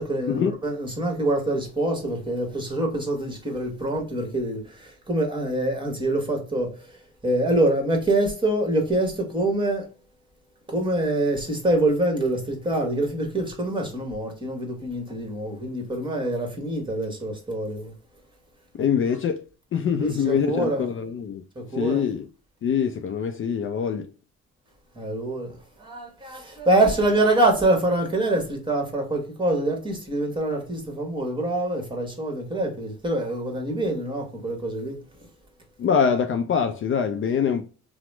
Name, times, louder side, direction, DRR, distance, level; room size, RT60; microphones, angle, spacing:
voice 1, 0.0-9.9 10.7-17.9 20.0-20.8 21.5-22.0 24.9-35.3, right 1 dB, 15° right, 1.3 m, -25 dB
voice 2, 18.7-19.4 19.7-21.4 21.8-22.2 22.6-24.1 35.8-37.6, left 7 dB, 45° left, 0.4 m, -24 dB
2.9 x 2.0 x 3.2 m
cardioid pair, 90°, 30 cm